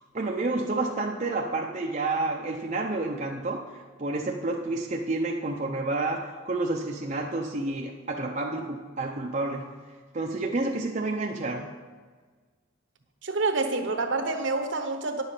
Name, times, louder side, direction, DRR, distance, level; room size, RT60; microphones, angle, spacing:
voice 1, 0.1-6.2 6.5-9.7 10.1-11.6, right 2 dB, 35° right, 0 dB, 0.6 m, -29 dB
voice 2, 13.2-15.2, right 3 dB, 60° right, 5 dB, 1.0 m, -27 dB
10.0 x 7.1 x 5.6 m, 1.5 s
head